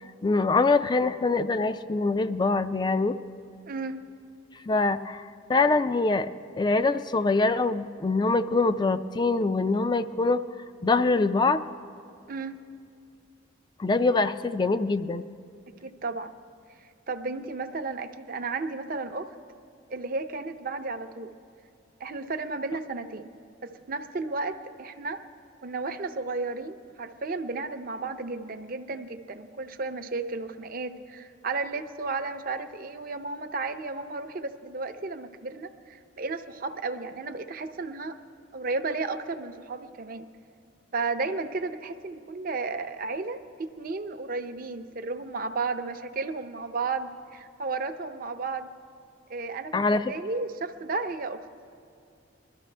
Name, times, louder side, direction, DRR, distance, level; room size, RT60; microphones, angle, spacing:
voice 1, 0.2-3.2 4.7-5.2 5.5-6.3 6.6-10.4 10.8-11.6 13.8-15.3 49.7-50.1, left 3 dB, 20° left, 12 dB, 0.3 m, -24 dB
voice 2, 3.7-4.0 12.3-12.6 15.8-16.3 17.1-19.3 19.9-21.3 22.0-23.3 23.6-25.2 25.6-38.2 38.5-40.3 40.9-48.7 49.3-51.5, right 3 dB, 45° right, 8 dB, 0.6 m, -33 dB
21.5 x 12.5 x 3.3 m, 2.5 s
head